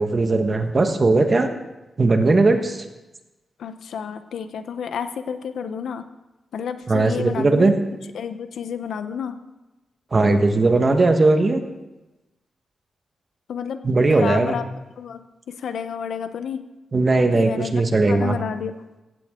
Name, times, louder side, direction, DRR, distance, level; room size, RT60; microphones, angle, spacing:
voice 1, 0.0-1.5 2.0-2.8 6.9-7.7 10.1-11.6 13.8-14.6 16.9-18.4, right 3 dB, 30° right, 6 dB, 1.4 m, -18 dB
voice 2, 3.6-6.0 6.5-7.7 8.1-9.3 13.5-13.8 14.1-14.6 15.0-15.2 15.5-16.6 17.3-17.7 18.1-18.7, left 7 dB, 85° left, 10 dB, 0.9 m, -30 dB
16.5 x 15.5 x 3.8 m, 1.0 s
wide cardioid pair, 135°, 0 cm